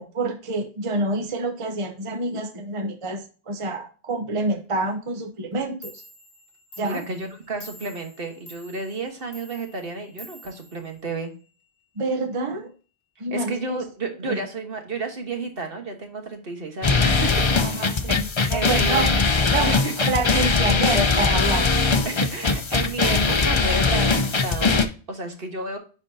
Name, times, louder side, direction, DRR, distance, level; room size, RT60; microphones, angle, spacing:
voice 1, 0.0-5.9 6.8-7.0 12.0-12.7 13.2-13.8 14.2-14.4 17.6-19.1 19.5-19.7 20.1-21.7, right 2 dB, 30° right, 6 dB, 0.8 m, -27 dB
Clock, 5.5-5.6 5.8-11.5, left 1 dB, 55° left, 1.7 m, -47 dB
voice 2, 6.8-11.3 13.3-18.2 18.5-19.1 19.6-19.9 22.0-25.8, right 3 dB, 60° right, 4 dB, 1.5 m, -32 dB
sound 1, 16.8-24.9, left 4 dB, 35° left, 0.6 m, -21 dB
10.5 x 4.4 x 2.7 m, 0.37 s
omnidirectional pair, 1.1 m